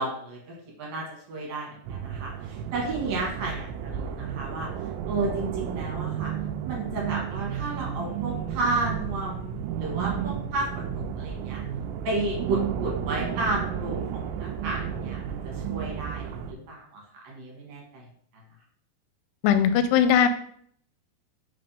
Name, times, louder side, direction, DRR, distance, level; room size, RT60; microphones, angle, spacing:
voice 1, 0.0-6.3 6.6-11.6 12.0-18.1, right 2 dB, 65° right, -2 dB, 2.7 m, -32 dB
sound 1, 1.8-16.5, right 8 dB, 85° right, 2.2 m, -32 dB
voice 2, 19.4-20.3, left 8 dB, 85° left, 10 dB, 2.7 m, -19 dB
5.8 x 3.4 x 5.2 m, 0.63 s
omnidirectional pair, 4.8 m